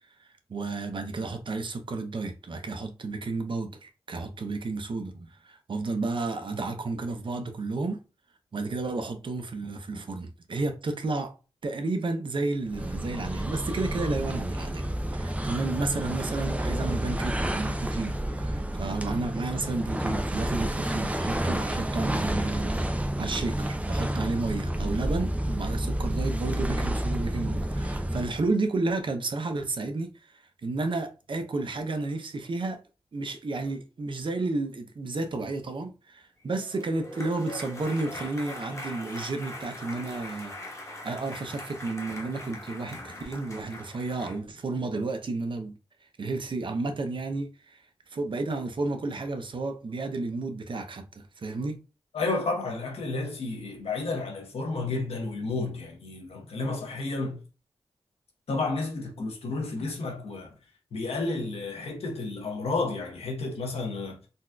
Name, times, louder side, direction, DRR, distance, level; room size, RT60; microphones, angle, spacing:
voice 1, 0.2-8.0 8.5-11.3 11.6-14.9 15.2-32.8 33.1-40.5 40.8-45.7 46.2-47.8 48.1-51.8, right 3 dB, 55° right, 0.6 m, -32 dB
sound 1, 12.7-28.5, right 1 dB, 15° right, 0.4 m, -30 dB
sound 2, 36.5-44.4, left 1 dB, 30° left, 1.1 m, -41 dB
voice 2, 52.1-57.4 58.5-60.5 60.9-64.2, left 3 dB, 90° left, 0.9 m, -31 dB
3.9 x 2.4 x 2.2 m
cardioid pair, 55°, 10 cm